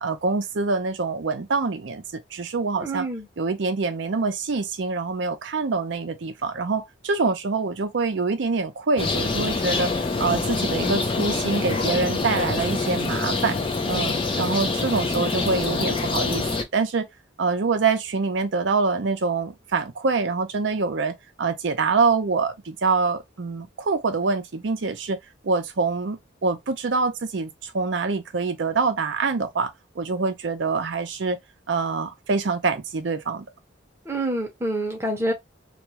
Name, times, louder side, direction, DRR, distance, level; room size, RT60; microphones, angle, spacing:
voice 1, 0.0-3.1 3.4-9.9 10.2-13.6 13.9-16.4 16.7-17.1 17.4-25.2 25.4-31.4 31.7-33.4, right 4 dB, 60° right, 0.5 m, -25 dB
voice 2, 2.8-3.3 34.1-35.3, right 1 dB, 15° right, 0.7 m, -27 dB
sound 1, 9.0-16.6, left 3 dB, 25° left, 0.5 m, -25 dB
2.4 x 2.2 x 2.7 m
head